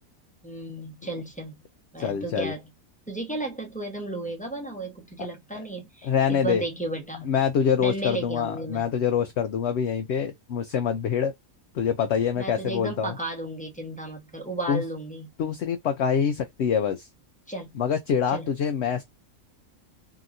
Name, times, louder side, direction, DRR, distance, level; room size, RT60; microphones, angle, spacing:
voice 1, 0.4-1.6 1.9-2.7 3.1-7.3 7.8-8.9 12.4-15.3 17.5-17.7 18.3-18.5, right 2 dB, 5° left, 0.9 m, -34 dB
voice 2, 2.0-2.5 5.5-5.6 6.0-6.6 7.3-11.3 11.7-13.1 14.7-14.8 15.4-17.1 17.7-19.0, left 7 dB, 65° left, 0.7 m, -25 dB
2.9 x 2.8 x 2.5 m
omnidirectional pair, 1.5 m